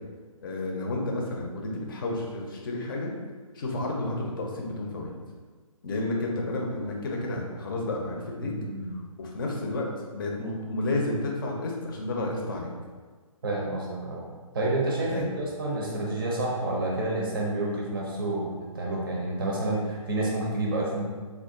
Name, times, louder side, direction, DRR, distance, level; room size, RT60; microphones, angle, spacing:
voice 1, 0.4-3.1 3.5-5.1 5.8-8.5 9.2-9.9 10.1-12.7 15.1-15.4, left 2 dB, 35° left, -1 dB, 0.6 m, -31 dB
voice 2, 8.4-8.9 13.4-14.2 14.5-21.1, right 2 dB, 40° right, -2 dB, 0.6 m, -29 dB
3.4 x 2.4 x 3.6 m, 1.5 s
hypercardioid pair, 155°, 18 cm